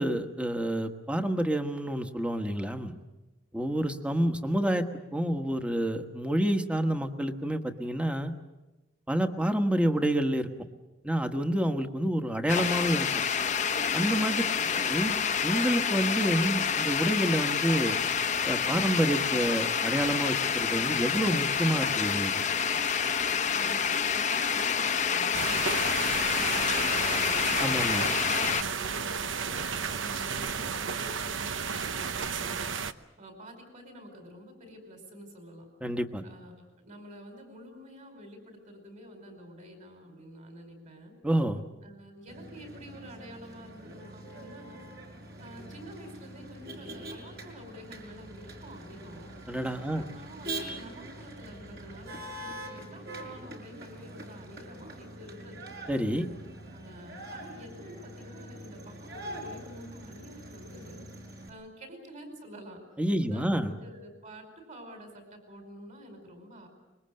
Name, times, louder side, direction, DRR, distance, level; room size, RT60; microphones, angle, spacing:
voice 1, 0.0-2.9 3.5-4.8 5.1-8.3 9.1-10.5 11.0-13.1 13.9-14.4 14.9-15.1 15.4-18.0 18.4-22.3 27.6-28.0 35.8-36.2 41.2-41.6 49.5-50.0 55.9-56.3 63.0-63.7, right 1 dB, 5° right, 6 dB, 1.3 m, -28 dB
sound 1, 12.5-28.6, left 7 dB, 40° left, 0.9 m, -28 dB
voice 2, 14.5-15.0 23.5-27.9 28.5-32.7 33.2-35.7 36.2-41.2 41.8-44.9 45.4-49.3 49.9-55.7 56.7-61.0 61.5-62.8 63.2-66.7, equal, 40° right, 5 dB, 5.0 m, -48 dB
sound 2, 25.3-32.9, right 6 dB, 75° right, 0.9 m, -33 dB
Motor vehicle (road), 42.3-61.5, right 1 dB, 60° right, 5.2 m, -44 dB
25.0 x 22.0 x 7.8 m, 1.1 s
head